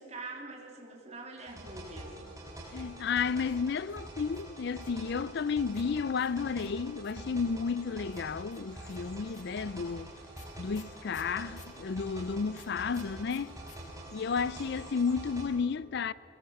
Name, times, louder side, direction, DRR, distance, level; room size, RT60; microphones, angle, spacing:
voice 1, 0.0-2.5, right 3 dB, 35° right, 3.3 m, -45 dB
sound 1, 1.4-15.4, right 1 dB, 15° right, 5.4 m, -46 dB
voice 2, 2.7-10.1 10.6-13.5 14.1-16.1, left 5 dB, 55° left, 0.4 m, -32 dB
sound 2, 3.4-5.1 5.7-7.3 8.1-11.8 12.5-13.8 14.0-14.1 14.3-14.8, left 9 dB, 40° left, 1.8 m, -58 dB
sound 3, 8.7-15.2, equal, 5° left, 2.1 m, -59 dB
25.5 x 21.5 x 7.1 m
head